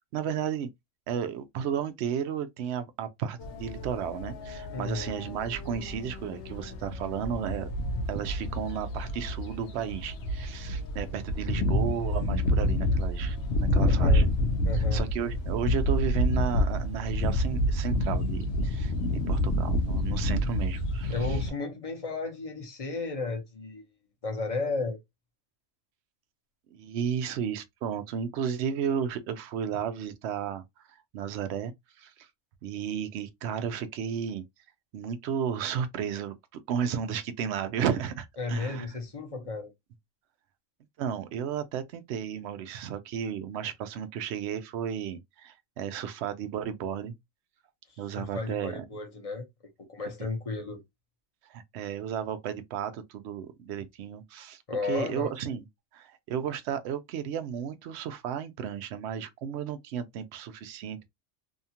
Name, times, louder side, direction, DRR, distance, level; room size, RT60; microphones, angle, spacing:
voice 1, 0.1-0.7 1.1-7.7 8.1-14.2 14.7-21.4 26.7-30.6 30.9-31.7 32.0-32.3 32.6-34.4 34.9-36.3 36.7-39.0 41.0-47.1 48.0-48.7 51.5-55.7 55.9-61.1, right 8 dB, 65° right, 0.8 m, -33 dB
sound 1, 3.4-21.5, left 1 dB, 70° left, 0.9 m, -28 dB
voice 2, 4.7-5.1 13.8-14.3 14.6-15.0 21.1-23.8 24.2-25.0 38.4-39.7 47.9-49.5 49.9-50.8 54.7-55.3, left 3 dB, 35° left, 0.7 m, -33 dB
2.8 x 2.3 x 2.7 m
omnidirectional pair, 1.3 m